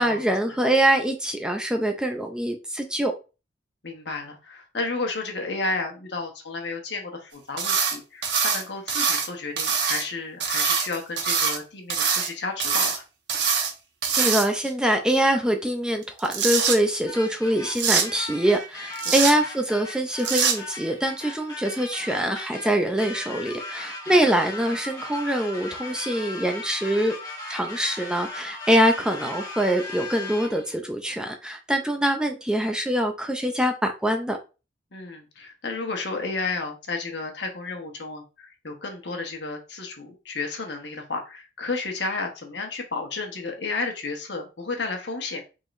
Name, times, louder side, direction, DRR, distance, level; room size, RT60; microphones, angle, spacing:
voice 1, 0.0-3.1 14.2-27.2 27.5-34.4, right 1 dB, 5° right, 4 dB, 0.4 m, -24 dB
voice 2, 3.8-13.0 19.0-19.3 24.1-24.2 34.9-45.4, left 3 dB, 65° left, 3 dB, 1.2 m, -32 dB
sound 1, 7.6-8.0 8.2-9.3 9.6-10.0 10.4-11.6 11.9-12.3 12.6-13.0 13.3-13.7 14.0-14.7 16.0-16.8 17.8-18.1 19.0-19.3 20.2-20.6, right 6 dB, 70° right, 1.0 m, -23 dB
sound 2, 17.1-30.7, left 2 dB, 20° left, 1.1 m, -38 dB
4.9 x 3.8 x 2.5 m, 0.31 s
head